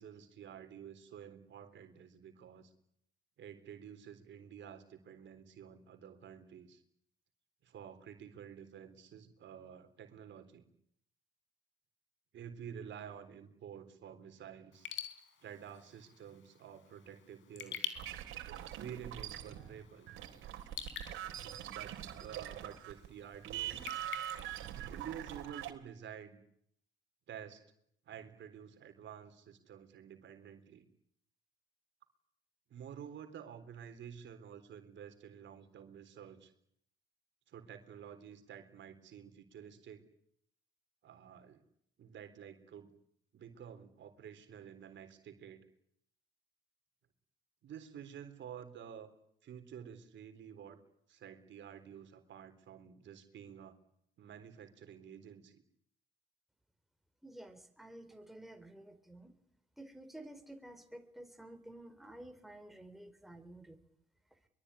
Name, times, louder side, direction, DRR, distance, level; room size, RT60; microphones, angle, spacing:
voice 1, 0.0-2.7 3.4-6.8 7.6-10.7 12.3-14.9 15.4-18.0 18.8-20.1 21.4-23.8 24.8-26.4 27.3-27.6 28.1-30.9 32.7-36.5 37.5-40.0 41.0-41.6 42.0-42.9 43.3-45.6 47.6-49.1 49.4-50.8 51.1-53.8 54.2-55.6, right 8 dB, 70° right, 8 dB, 3.8 m, -50 dB
Raindrop / Drip, 14.7-25.5, left 8 dB, 75° left, 4.5 m, -49 dB
weirder sounds, 18.0-23.1 23.3-25.7, right 12 dB, 90° right, 3.4 m, -43 dB
voice 2, 57.2-59.4 59.8-63.8, right 1 dB, ahead, 7 dB, 3.9 m, -52 dB
23.5 x 23.0 x 9.9 m, 0.70 s
cardioid pair, 90°, 20 cm